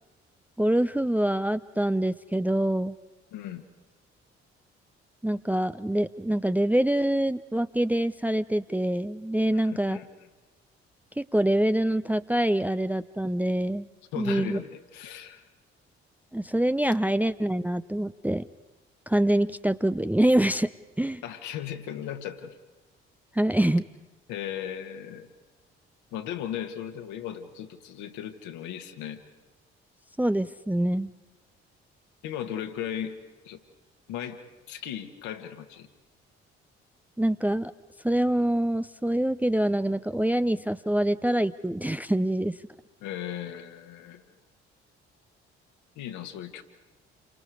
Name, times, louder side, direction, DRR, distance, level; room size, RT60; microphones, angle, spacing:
voice 1, 0.6-3.0 5.2-10.0 11.2-13.9 14.2-14.6 16.3-18.4 19.1-20.7 21.0-21.2 23.3-23.9 30.2-31.1 37.2-37.7 38.0-42.6, right 1 dB, 5° right, 12 dB, 0.7 m, -25 dB
voice 2, 3.3-3.6 9.5-10.1 14.1-15.4 21.2-22.6 24.3-25.3 26.1-29.2 32.2-33.2 33.4-33.6 34.1-34.4 34.7-35.9 43.0-44.3 46.0-46.6, left 10 dB, 65° left, 6 dB, 2.2 m, -36 dB
29.5 x 24.5 x 4.9 m, 1.2 s
figure-of-eight pair, 45°, 32 cm